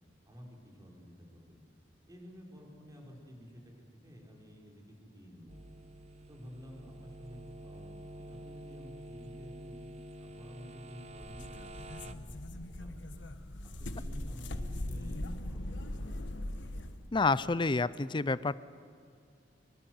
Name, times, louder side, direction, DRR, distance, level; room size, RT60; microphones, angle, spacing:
voice 1, 0.3-1.6 2.1-3.7 4.0-5.7 6.3-9.8 10.2-13.2 13.6-16.2, equal, 20° right, 0 dB, 4.8 m, -52 dB
sound 1, 5.5-12.1, right 1 dB, 35° right, 1.0 m, -48 dB
sound 2, 11.1-17.1, left 1 dB, 80° left, 1.4 m, -40 dB
voice 2, 17.1-18.6, left 3 dB, 25° left, 18 dB, 0.6 m, -29 dB
23.5 x 22.5 x 7.9 m, 2.2 s
head